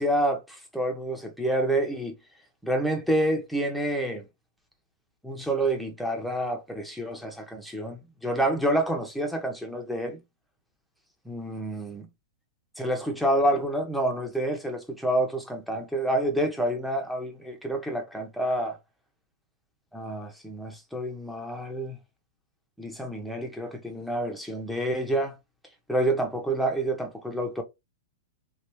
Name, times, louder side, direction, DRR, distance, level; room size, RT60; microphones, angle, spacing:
voice 1, 0.0-2.1 2.6-4.2 5.2-10.2 11.2-12.1 12.8-18.8 19.9-22.0 22.8-25.3 25.9-27.6, right 1 dB, ahead, 1.0 m, -28 dB
3.1 x 2.6 x 3.1 m
hypercardioid pair, 120°, 0 cm